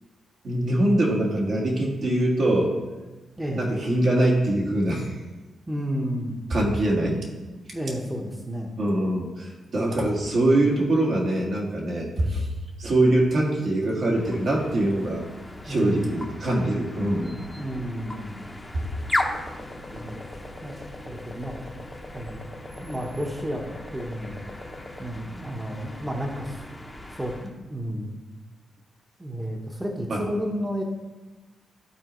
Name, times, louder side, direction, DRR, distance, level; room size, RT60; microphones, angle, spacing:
voice 1, 0.4-2.7 3.5-5.1 6.5-7.2 8.8-12.5 12.8-15.2 15.6-17.4 18.7-18.8 30.1-30.2, right 1 dB, 60° right, -2 dB, 1.8 m, -23 dB
voice 2, 3.4-3.7 5.7-6.4 7.7-8.7 15.7-16.3 17.6-18.5 19.9-20.2 20.6-20.7 21.1-21.7 22.1-22.4 22.8-23.7 23.9-24.4 25.0-26.7 27.1-28.2 29.2-30.8, equal, 15° right, 0 dB, 1.1 m, -32 dB
sound 1, 14.1-27.5, left 1 dB, 15° left, 0.9 m, -37 dB
12.5 x 4.1 x 3.1 m, 1.2 s
cardioid pair, 75°, 0 cm